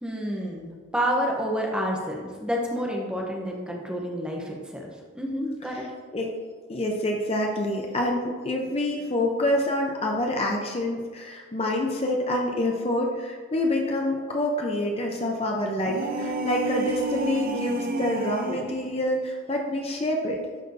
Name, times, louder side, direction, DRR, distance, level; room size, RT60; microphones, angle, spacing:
voice 1, 0.0-5.8, equal, 5° right, -1 dB, 0.8 m, -29 dB
voice 2, 6.7-20.4, left 1 dB, 30° left, 1 dB, 0.6 m, -27 dB
sound 1, 15.8-18.7, right 2 dB, 45° right, 0.6 m, -30 dB
11.5 x 4.3 x 2.7 m, 1.5 s
head